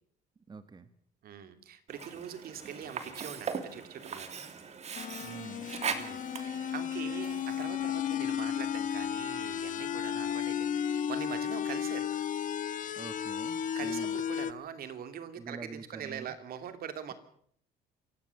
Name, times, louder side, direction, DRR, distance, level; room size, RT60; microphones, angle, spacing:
voice 1, 0.5-0.9 5.2-5.7 13.0-14.2 15.4-16.3, right 4 dB, 25° right, 11 dB, 1.4 m, -45 dB
voice 2, 1.2-4.5 5.9-12.1 13.7-17.1, right 8 dB, 60° right, 9 dB, 2.8 m, -43 dB
Sink (filling or washing), 1.9-7.9, right 6 dB, 40° right, 2.9 m, -40 dB
sound 1, 4.9-14.5, left 8 dB, 50° left, 1.4 m, -33 dB
27.5 x 16.5 x 7.1 m, 0.64 s
cardioid pair, 110°, 17 cm